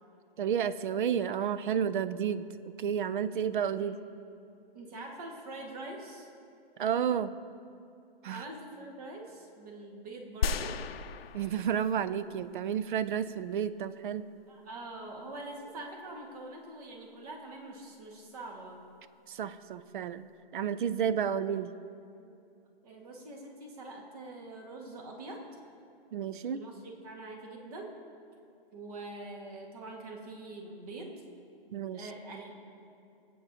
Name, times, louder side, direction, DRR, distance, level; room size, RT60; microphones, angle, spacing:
voice 1, 0.4-2.4 2.8-4.0 6.8-7.3 8.2-8.4 11.3-14.3 19.3-20.3 20.5-21.7 26.1-26.6 31.7-32.1, right 8 dB, 55° right, 14 dB, 0.5 m, -31 dB
voice 2, 4.7-6.3 8.3-10.8 14.5-18.8 21.3-21.4 22.8-25.4 26.5-27.9 28.7-31.1 31.9-32.6, right 2 dB, 40° right, 1 dB, 1.7 m, -44 dB
sound 1, 10.4-12.2 12.7-12.8, left 6 dB, 75° left, 0.6 m, -34 dB
20.5 x 8.5 x 2.8 m, 2.6 s
hypercardioid pair, 150°, 30 cm